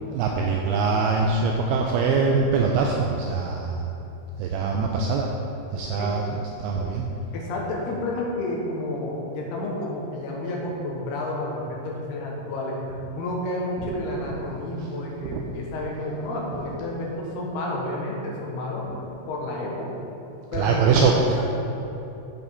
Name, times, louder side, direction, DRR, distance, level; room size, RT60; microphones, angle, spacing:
voice 1, 0.0-3.8 4.4-5.3 5.7-7.1 15.3-15.4 20.5-21.1, right 5 dB, 85° right, 0 dB, 2.2 m, -23 dB
voice 2, 7.3-20.0 20.5-21.4, left 1 dB, 75° left, -2 dB, 3.0 m, -30 dB
8.2 x 7.9 x 3.6 m, 2.9 s
omnidirectional pair, 4.8 m